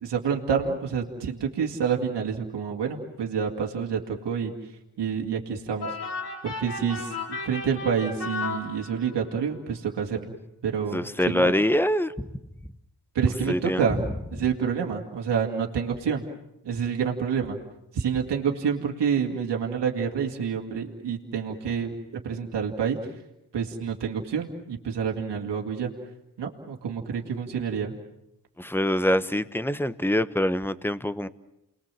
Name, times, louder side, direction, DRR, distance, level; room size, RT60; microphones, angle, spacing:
voice 1, 0.0-4.5 5.0-6.0 6.4-10.4 10.6-11.5 13.1-14.0 14.3-16.2 16.6-17.6 17.9-23.0 23.5-25.9 26.4-28.0, right 6 dB, 85° right, 1 dB, 2.3 m, -28 dB
sound 1, 5.8-9.3, left 3 dB, 70° left, 4.9 m, -34 dB
voice 2, 10.9-12.3 13.5-14.0 28.6-31.3, left 1 dB, 5° left, 13 dB, 1.2 m, -25 dB
29.0 x 21.0 x 7.6 m, 0.88 s
cardioid pair, 45°, 40 cm